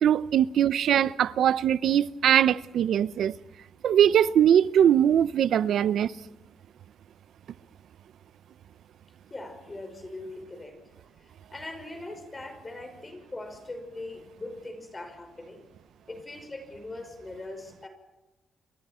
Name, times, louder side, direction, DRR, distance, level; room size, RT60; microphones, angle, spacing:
voice 1, 0.0-3.4 3.8-6.1, right 9 dB, 75° right, 0.7 m, -21 dB
voice 2, 9.3-15.6 16.1-17.9, left 2 dB, 20° left, 5.4 m, -41 dB
30.0 x 24.0 x 4.4 m
cardioid pair, 105°, 0 cm